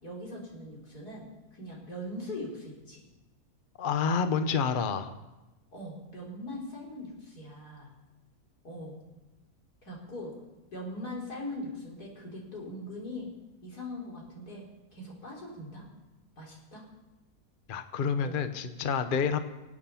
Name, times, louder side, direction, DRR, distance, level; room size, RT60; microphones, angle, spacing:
voice 1, 0.0-3.0 5.7-7.9 8.6-9.0 9.8-10.3 10.7-13.3 13.6-14.6 14.9-15.8 16.4-16.8 18.2-18.4, left 1 dB, 85° left, -3 dB, 4.7 m, -41 dB
voice 2, 3.8-5.1 17.7-19.4, left 6 dB, 40° left, 9 dB, 0.8 m, -28 dB
25.5 x 8.7 x 5.7 m, 1.1 s
omnidirectional pair, 1.6 m